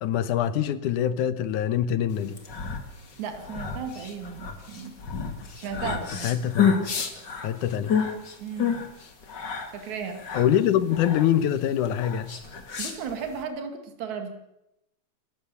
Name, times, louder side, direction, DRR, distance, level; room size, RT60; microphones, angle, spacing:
voice 1, 0.0-2.4 6.2-6.8 7.4-7.9 10.3-12.3, left 10 dB, 85° left, 14 dB, 2.6 m, -24 dB
sound 1, 2.2-13.4, left 7 dB, 35° left, 2.6 m, -30 dB
voice 2, 3.2-5.0 5.6-6.3 8.4-8.8 9.7-10.2 12.8-14.3, right 6 dB, 70° right, 6 dB, 3.5 m, -35 dB
28.5 x 14.5 x 7.0 m, 0.87 s
omnidirectional pair, 3.4 m